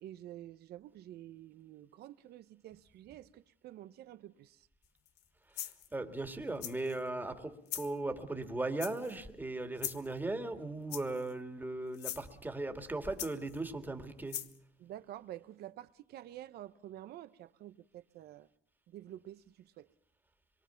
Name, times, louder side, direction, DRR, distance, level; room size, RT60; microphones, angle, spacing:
voice 1, 0.0-4.7 14.8-18.5 18.9-19.9, right 13 dB, 70° right, 0.9 m, -49 dB
sound 1, 5.1-5.2 5.6-5.9 6.6-7.0 7.7-7.9 8.8-9.2 9.8-10.1 10.9-11.3 11.9-12.2 13.2-13.6 14.3-14.6, left 12 dB, 90° left, 1.1 m, -41 dB
voice 2, 5.5-14.7, right 2 dB, 10° right, 2.2 m, -38 dB
24.5 x 22.5 x 5.8 m
cardioid pair, 110°, 17 cm